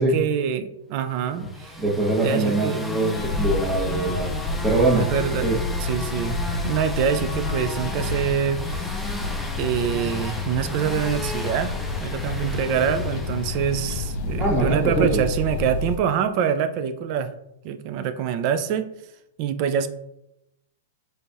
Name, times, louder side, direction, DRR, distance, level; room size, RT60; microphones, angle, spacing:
voice 1, 0.0-1.8 2.2-2.8 4.9-5.5 5.8-6.4 6.6-8.9 9.6-17.3 17.6-18.9 19.4-19.9, right 8 dB, 45° right, 11 dB, 0.4 m, -25 dB
sound 1, 1.3-14.3, left 1 dB, 5° left, 0.6 m, -35 dB
voice 2, 1.8-4.3 4.6-5.1 5.4-5.6 14.4-15.2, right 2 dB, 15° right, -6 dB, 1.2 m, -22 dB
sound 2, 3.1-16.0, left 3 dB, 55° left, 0.4 m, -29 dB
5.3 x 3.5 x 2.6 m, 0.84 s
hypercardioid pair, 125°, 0 cm